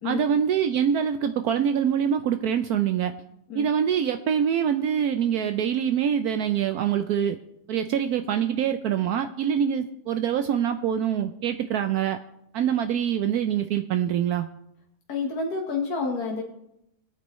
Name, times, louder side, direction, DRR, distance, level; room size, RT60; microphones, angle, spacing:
voice 1, 0.0-3.1 3.5-7.4 7.7-12.2 12.5-14.5, right 8 dB, 75° right, 8 dB, 1.0 m, -24 dB
voice 2, 15.1-16.4, left 4 dB, 65° left, -1 dB, 1.8 m, -29 dB
22.5 x 9.0 x 3.1 m, 0.82 s
omnidirectional pair, 1.8 m